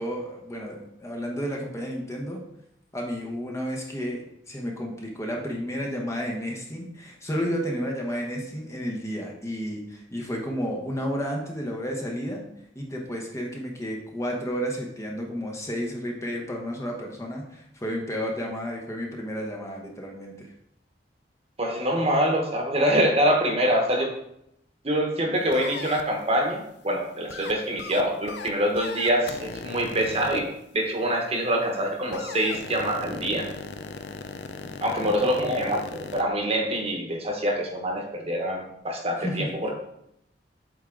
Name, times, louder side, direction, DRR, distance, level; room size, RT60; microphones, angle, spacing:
voice 1, 0.0-2.4 2.9-12.4 12.7-20.5 34.6-35.2 39.2-39.6, equal, 15° left, 0 dB, 0.9 m, -32 dB
voice 2, 21.6-24.1 24.8-30.5 30.7-33.5 34.8-39.7, equal, 35° right, 2 dB, 1.1 m, -25 dB
sound 1, 25.5-26.0 27.3-27.5 27.8-28.0 28.3-28.5 28.8-30.4 32.1-36.2, left 4 dB, 70° left, 0.5 m, -37 dB
7.9 x 3.6 x 3.8 m, 0.77 s
head